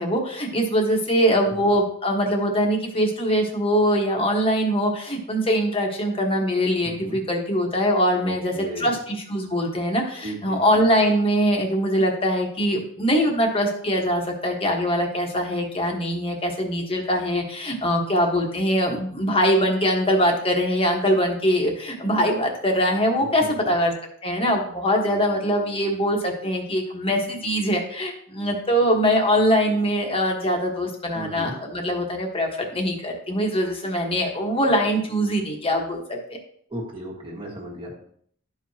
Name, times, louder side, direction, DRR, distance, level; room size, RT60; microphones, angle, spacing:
voice 1, 0.0-23.9 24.2-36.4, equal, 25° left, 1 dB, 1.3 m, -22 dB
voice 2, 6.8-7.2 8.2-8.9 10.2-10.8 23.2-23.7 31.1-31.6 36.7-38.0, equal, 25° right, -2 dB, 1.6 m, -35 dB
12.5 x 4.8 x 2.8 m, 0.63 s
head